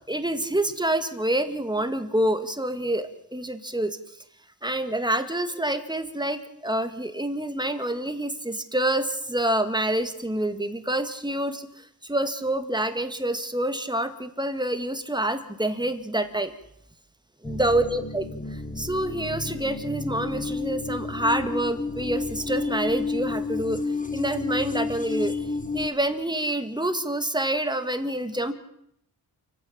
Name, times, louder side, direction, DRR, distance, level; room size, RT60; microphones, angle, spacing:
voice 1, 0.1-4.0 4.6-16.5 17.4-23.8 24.1-25.5 25.7-28.5, right 1 dB, 10° right, 8 dB, 2.0 m, -27 dB
sound 1, 17.4-25.9, left 3 dB, 15° left, 1.7 m, -31 dB
29.0 x 15.5 x 8.7 m, 0.74 s
wide cardioid pair, 160°, 46 cm